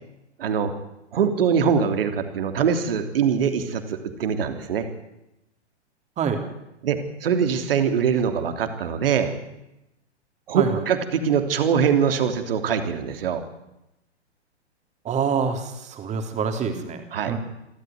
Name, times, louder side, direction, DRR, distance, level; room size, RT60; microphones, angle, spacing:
voice 1, 0.4-0.7 1.1-4.9 6.8-9.3 10.5-13.4 17.1-17.4, right 7 dB, 55° right, 7 dB, 3.2 m, -23 dB
voice 2, 15.0-17.4, right 6 dB, 20° right, 5 dB, 3.6 m, -26 dB
27.0 x 13.5 x 9.5 m, 0.91 s
figure-of-eight pair, 115°, 34 cm